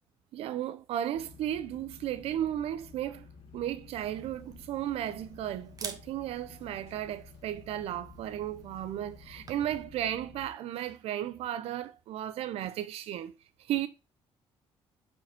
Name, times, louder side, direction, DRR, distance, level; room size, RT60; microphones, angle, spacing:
voice 1, 0.3-3.3 3.5-13.3 13.6-13.9, right 11 dB, 80° right, 0.9 m, -34 dB
sound 1, 1.1-10.5, left 4 dB, 70° left, 1.8 m, -52 dB
Camera, 4.0-9.8, right 5 dB, 35° right, 1.1 m, -49 dB
5.9 x 4.8 x 4.4 m
cardioid pair, 120°, 10 cm